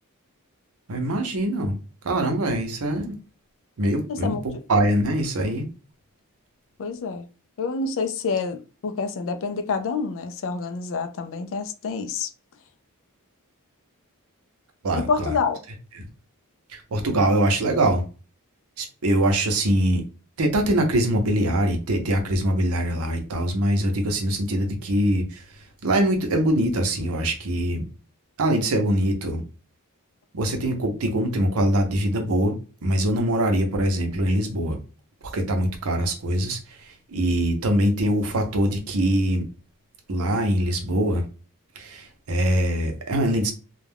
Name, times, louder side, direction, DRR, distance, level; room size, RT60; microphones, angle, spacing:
voice 1, 0.9-1.8 2.0-3.1 3.8-4.3 4.7-5.6 14.8-15.3 16.7-18.0 18.8-20.0 20.4-25.4 25.8-27.8 28.4-29.4 30.3-32.6 32.8-34.8 35.3-36.6 37.1-39.4 40.1-41.2 41.8-43.5, right 1 dB, 70° right, 0.7 m, -23 dB
voice 2, 4.1-4.4 6.8-7.3 7.6-8.6 8.8-12.3 15.0-15.6, left 4 dB, 60° left, 0.4 m, -27 dB
2.3 x 2.2 x 3.3 m
head